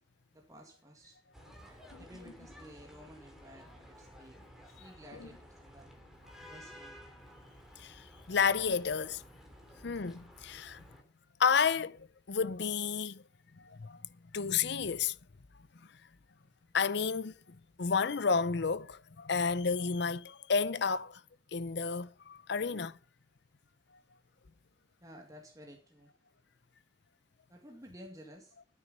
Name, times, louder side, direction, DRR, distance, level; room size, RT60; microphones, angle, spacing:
voice 1, 0.3-1.2 1.6-4.4 4.7-5.9 6.4-7.0 9.7-9.8 25.0-26.1 27.5-28.6, equal, 20° right, 2.0 m, -54 dB
sound 1, 1.3-11.0, equal, ahead, 3.1 m, -54 dB
voice 2, 7.8-9.2 9.8-10.8 11.4-13.2 13.6-14.0 14.3-15.2 16.7-17.3 17.8-21.2 21.5-23.0, left 5 dB, 65° left, 0.7 m, -31 dB
12.0 x 10.0 x 5.4 m
head